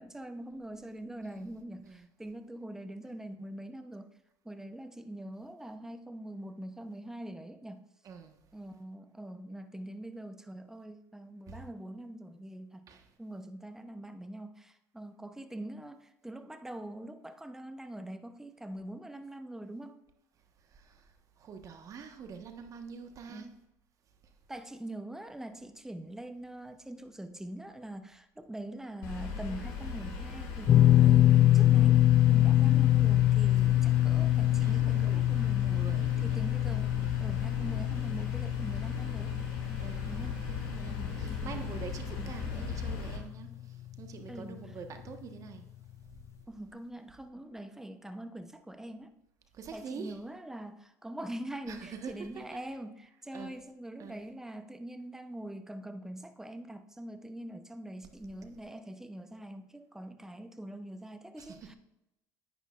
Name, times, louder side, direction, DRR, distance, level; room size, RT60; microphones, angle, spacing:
voice 1, 0.0-4.1 4.4-7.9 8.5-12.9 13.2-20.0 23.3-23.6 24.5-32.0 32.3-35.9 36.2-39.3 40.1-40.4 40.9-41.8 42.2-42.4 44.3-44.8 46.5-49.1 49.7-61.7, right 1 dB, 5° right, 0.8 m, -43 dB
voice 2, 20.7-21.0 21.4-23.4 34.6-36.1 36.9-37.2 39.8-45.6 46.0-46.2 49.5-50.1 51.7-52.3 53.3-53.5 54.0-54.2 61.4-61.7, right 6 dB, 50° right, 1.3 m, -45 dB
sound 1, 29.0-43.2, left 5 dB, 80° left, 3.5 m, -38 dB
sound 2, 30.7-42.9 43.2-43.4 45.1-45.2, left 13 dB, 40° left, 0.3 m, -25 dB
10.0 x 9.6 x 2.4 m
supercardioid pair, 85°, 7 cm